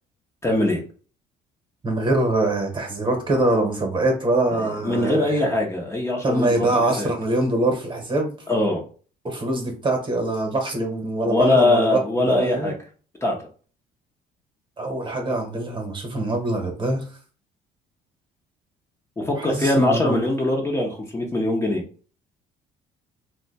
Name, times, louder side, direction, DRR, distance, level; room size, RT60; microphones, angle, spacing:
voice 1, 0.4-0.8 4.5-7.1 8.5-8.8 11.2-12.7 13.2-13.4 19.2-21.8, left 2 dB, 15° left, -1 dB, 0.7 m, -22 dB
voice 2, 1.8-5.4 6.2-8.3 9.2-12.7 14.8-17.1 19.4-20.2, right 2 dB, 30° right, 2 dB, 1.1 m, -24 dB
2.7 x 2.2 x 4.0 m, 0.39 s
cardioid pair, 110°, 17 cm